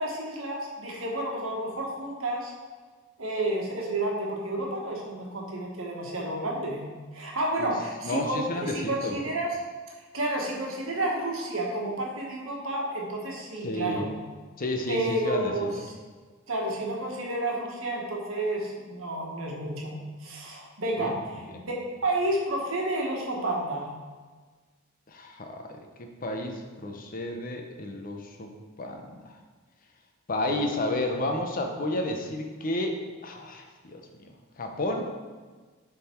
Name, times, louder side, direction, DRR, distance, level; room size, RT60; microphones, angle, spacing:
voice 1, 0.0-2.5 3.2-6.9 7.1-9.6 10.1-14.1 14.9-15.7 16.5-21.8 22.0-23.9, right 1 dB, 80° right, -1 dB, 1.3 m, -30 dB
voice 2, 8.0-9.2 13.6-14.1 14.6-15.9 21.0-21.1 21.5-21.6 25.1-28.5 28.8-29.4 30.3-34.3 34.6-35.1, left 1 dB, 45° left, 4 dB, 0.7 m, -32 dB
6.9 x 3.8 x 4.4 m, 1.4 s
head